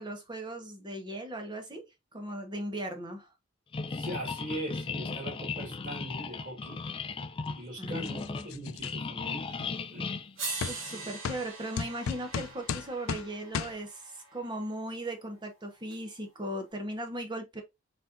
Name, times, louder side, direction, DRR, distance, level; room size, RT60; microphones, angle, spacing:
voice 1, 0.0-1.8 2.1-3.3 7.8-8.5 10.7-17.6, right 1 dB, 20° right, 1.1 m, -38 dB
sound 1, 3.7-11.2, left 4 dB, 25° left, 0.3 m, -37 dB
voice 2, 3.9-6.8 7.6-8.2 8.4-9.5 9.9-10.2, right 1 dB, 40° right, 2.6 m, -40 dB
sound 2, 8.0-8.9 9.6-9.7 10.6-10.8 11.2-11.4 11.8-13.3 13.5-13.7, left 6 dB, 90° left, 0.4 m, -34 dB
sound 3, 9.8-9.9 10.4-14.6 15.9-16.0, right 3 dB, 70° right, 2.0 m, -42 dB
4.2 x 4.2 x 2.5 m
head